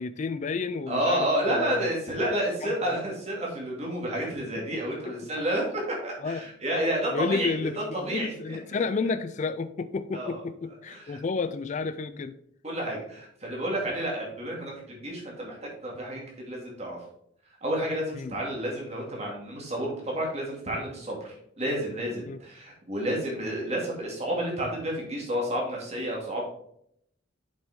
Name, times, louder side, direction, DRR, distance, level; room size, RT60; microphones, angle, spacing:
voice 1, 0.0-1.9 2.6-2.7 4.3-5.4 6.2-6.4 7.1-12.4 18.1-18.4 22.3-22.4, left 4 dB, 35° left, 12 dB, 0.3 m, -32 dB
voice 2, 0.9-5.7 6.0-8.8 10.1-10.4 10.9-11.2 12.6-15.6 15.8-17.0 17.6-26.4, right 1 dB, 30° right, -2 dB, 2.4 m, -30 dB
7.1 x 6.1 x 3.6 m, 0.70 s
head